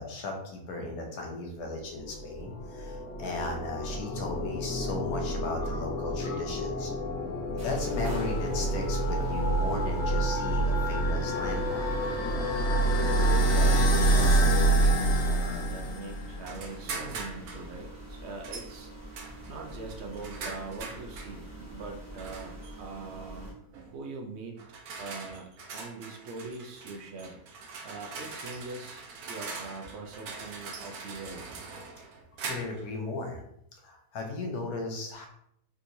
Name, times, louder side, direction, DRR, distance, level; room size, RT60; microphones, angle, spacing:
voice 1, 0.0-6.9 7.6-11.9 32.4-33.4 33.8-35.3, left 2 dB, 85° left, 2 dB, 1.2 m, -36 dB
sound 1, 2.2-16.3, right 1 dB, 60° left, 0.8 m, -27 dB
sound 2, 7.6-23.5, right 1 dB, 25° right, 0.3 m, -45 dB
voice 2, 12.6-23.6 23.9-24.6 25.0-31.5, right 3 dB, 60° right, 1 dB, 0.7 m, -42 dB
sound 3, 16.4-17.7 18.4-18.7 19.1-21.4 22.2-22.7 23.7-24.0 24.6-32.9, right 4 dB, 85° right, 1.1 m, -42 dB
3.5 x 2.9 x 2.6 m, 0.73 s
omnidirectional pair, 1.5 m